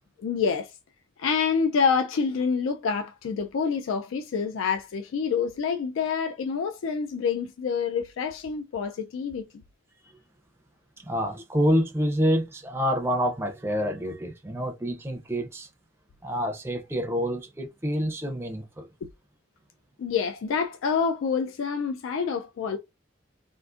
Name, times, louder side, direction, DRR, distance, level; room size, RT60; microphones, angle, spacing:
voice 1, 0.2-0.7 1.2-9.4 20.0-22.8, left 6 dB, 85° left, 0.3 m, -27 dB
voice 2, 11.0-15.7 16.2-18.9, equal, 10° right, 0.4 m, -27 dB
3.7 x 2.4 x 2.4 m
head